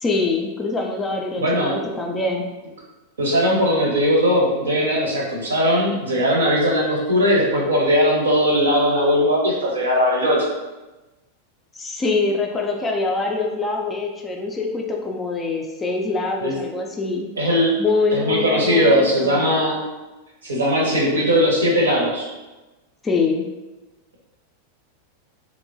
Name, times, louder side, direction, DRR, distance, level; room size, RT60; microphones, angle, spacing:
voice 1, 0.0-2.5 11.8-17.3 17.8-19.4 23.0-23.5, left 3 dB, 15° left, 1 dB, 0.3 m, -24 dB
voice 2, 1.4-1.8 3.2-10.5 16.4-16.5 17.4-17.8 18.1-19.8 20.4-22.3, equal, 70° right, -2 dB, 0.7 m, -19 dB
2.9 x 2.1 x 2.6 m, 1.1 s
figure-of-eight pair, 90°, 0 cm